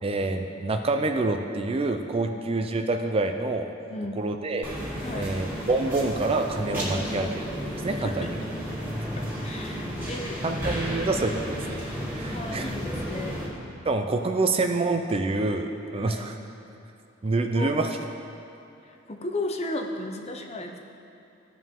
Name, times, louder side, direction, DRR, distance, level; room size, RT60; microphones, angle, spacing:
voice 1, 0.0-3.7 4.2-4.7 5.1-8.3 10.4-11.8 12.1-12.7 13.9-16.4 17.2-17.9, right 3 dB, 30° right, 5 dB, 0.4 m, -27 dB
voice 2, 3.9-4.2 5.0-5.3 7.8-8.3 9.4-10.4 12.3-13.6 16.0-16.3 17.6-17.7 18.9-20.8, left 2 dB, 30° left, 3 dB, 0.7 m, -35 dB
sound 1, 4.6-13.5, equal, 10° right, 2.3 m, -32 dB
16.0 x 5.4 x 3.7 m, 2.8 s
head